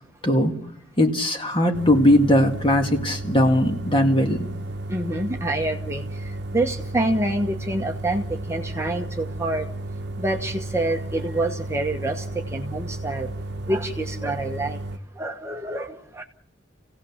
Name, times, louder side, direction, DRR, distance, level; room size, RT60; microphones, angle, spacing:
voice 1, 0.2-0.5 1.0-4.5, left 1 dB, 30° left, 2.1 m, -19 dB
sound 1, 1.7-15.0, right 2 dB, 60° right, 1.0 m, -33 dB
voice 2, 4.9-6.0 6.5-9.7 10.2-13.3 13.7-14.8 15.2-16.2, right 1 dB, 15° right, 1.2 m, -27 dB
28.0 x 17.0 x 7.2 m
head